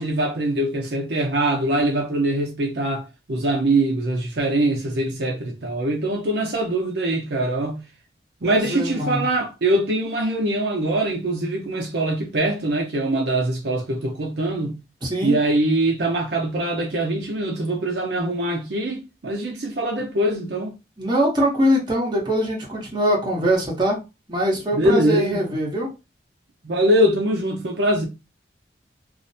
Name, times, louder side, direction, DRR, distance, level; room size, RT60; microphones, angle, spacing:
voice 1, 0.0-7.8 8.4-14.8 15.2-20.7 24.7-25.4 26.6-28.1, right 1 dB, 65° right, 0.6 m, -23 dB
voice 2, 8.4-9.3 15.0-15.3 21.0-24.0 24.3-25.9, equal, 25° right, 0.9 m, -22 dB
2.5 x 2.1 x 2.6 m
head